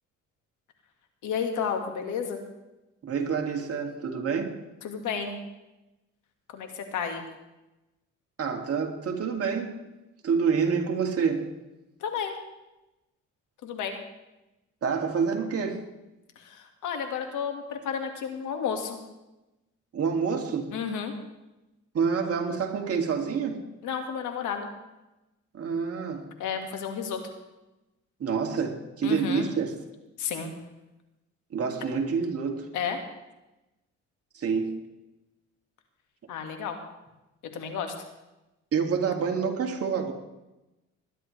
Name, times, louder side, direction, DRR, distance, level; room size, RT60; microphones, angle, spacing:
voice 1, 1.2-2.4 4.8-5.4 6.5-7.3 12.0-12.4 13.6-14.0 16.4-19.0 20.7-21.1 23.8-24.7 26.4-27.3 29.0-29.5 30.2-30.5 32.7-33.0 36.3-36.8 37.5-37.9, left 7 dB, 85° left, 1.9 m, -32 dB
voice 2, 3.0-4.6 8.4-9.8 10.2-11.5 14.8-15.8 19.9-20.7 21.9-23.7 25.5-26.3 28.2-29.8 31.5-32.8 34.3-34.8 38.7-40.1, right 6 dB, 50° right, 2.4 m, -27 dB
21.0 x 11.0 x 3.3 m
cardioid pair, 90°, 30 cm